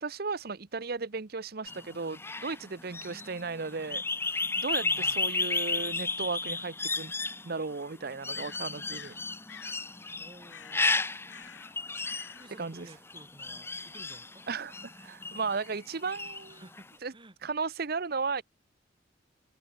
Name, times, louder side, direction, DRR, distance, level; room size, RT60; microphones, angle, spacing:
voice 1, 0.0-4.0 4.3-7.1 7.4-9.1 12.6-12.9 14.5-16.6 17.0-17.1 17.4-18.4, right 4 dB, 55° right, 0.9 m, -35 dB
sound 1, 1.7-15.8 16.1-16.8, left 3 dB, 15° left, 0.9 m, -33 dB
voice 2, 3.0-3.6 4.8-5.2 10.2-11.9 12.3-14.5 16.5-16.9 17.1-17.4, right 1 dB, 25° right, 2.5 m, -54 dB
sound 2, 6.3-6.4 8.3-9.2 9.5-9.8 10.5-10.9 11.3-11.7 12.0-12.5, left 7 dB, 85° left, 1.4 m, -49 dB
head